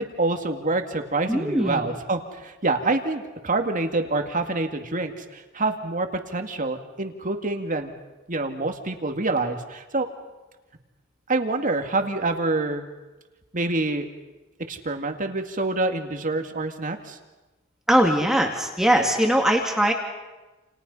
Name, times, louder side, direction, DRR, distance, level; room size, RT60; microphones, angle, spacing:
voice 1, 0.0-7.9 8.3-10.1 11.3-12.8 13.5-14.1 14.7-17.2, right 2 dB, 40° right, 6 dB, 2.3 m, -26 dB
voice 2, 1.3-1.8 17.9-19.9, equal, ahead, 1 dB, 2.3 m, -21 dB
29.5 x 29.5 x 5.6 m, 1.1 s
head